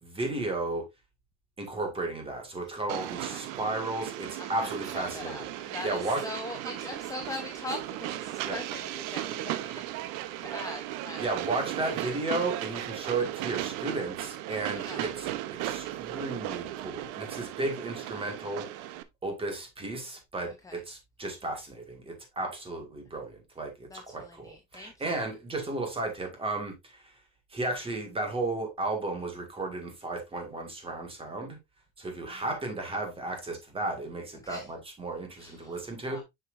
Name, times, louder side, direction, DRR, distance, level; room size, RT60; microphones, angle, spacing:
voice 1, 0.0-0.9 1.6-6.3 8.4-8.6 11.2-15.3 15.6-18.9 19.2-27.1 27.5-31.6 32.0-36.2, right 2 dB, 15° right, 1.8 m, -34 dB
Train, 2.9-19.0, right 14 dB, 85° right, 0.8 m, -36 dB
voice 2, 4.4-9.9 10.4-11.3 11.9-12.1 14.7-15.1 20.6-20.8 23.9-25.3 32.4-32.5 34.4-34.7 35.4-36.2, left 3 dB, 10° left, 0.6 m, -42 dB
7.2 x 6.0 x 2.5 m
cardioid pair, 165°, 36 cm